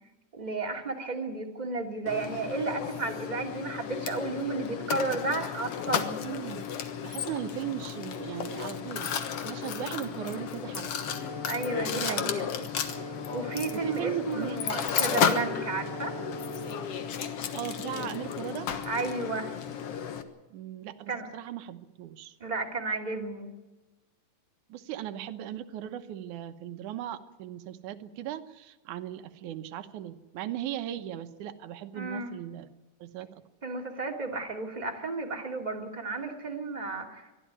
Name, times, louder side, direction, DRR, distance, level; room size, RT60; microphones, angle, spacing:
voice 1, 0.3-6.3 11.5-12.5 13.0-16.2 18.8-19.5 21.1-21.3 22.4-23.5 31.9-32.3 33.6-37.3, right 3 dB, 15° right, 1 dB, 2.1 m, -33 dB
Mechanisms, 2.1-20.2, left 7 dB, 55° left, 1.8 m, -33 dB
voice 2, 6.2-6.7 7.0-11.3 11.9-12.3 13.7-14.6 17.5-18.7 20.5-22.3 24.7-32.7 33.0-33.4, right 11 dB, 70° right, 9 dB, 2.3 m, -38 dB
Wind instrument woodwind instrument, 11.0-17.0, right 1 dB, 30° left, 3.4 m, -43 dB
22.5 x 13.5 x 9.6 m, 1.1 s
omnidirectional pair, 4.0 m